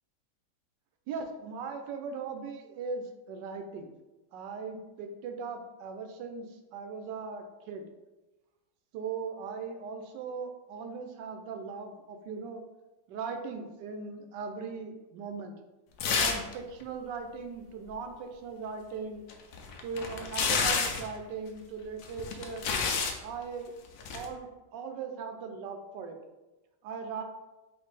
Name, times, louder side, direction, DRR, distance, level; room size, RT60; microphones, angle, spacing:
voice 1, 1.1-3.9 4.3-7.9 8.9-12.6 13.1-15.5 16.2-19.2 19.8-22.7 23.2-23.7 24.1-26.2 26.8-27.2, right 5 dB, 80° right, 5 dB, 1.2 m, -39 dB
sound 1, 16.0-16.5 16.8-16.9 19.3-21.1 22.0-23.2 24.0-24.3, left 5 dB, 70° left, 1.1 m, -29 dB
4.4 x 2.6 x 4.0 m, 1.1 s
omnidirectional pair, 1.9 m